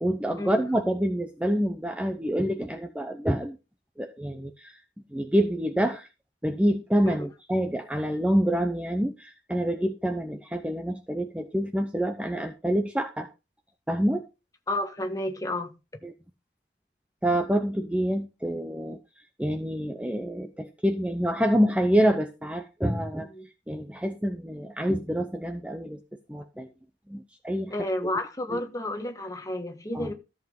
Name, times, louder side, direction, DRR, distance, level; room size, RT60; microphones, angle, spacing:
voice 1, 0.0-3.6 4.0-4.8 5.1-6.1 6.4-13.3 13.9-14.2 16.0-16.1 17.2-19.0 19.4-23.3 23.7-26.0 26.3-26.7 27.1-27.7 28.0-28.1 28.5-28.6 29.9-30.1, equal, 5° right, 0.8 m, -27 dB
voice 2, 14.7-15.7 23.2-23.5 27.7-30.1, left 1 dB, 20° left, 1.5 m, -31 dB
13.5 x 7.3 x 3.8 m
head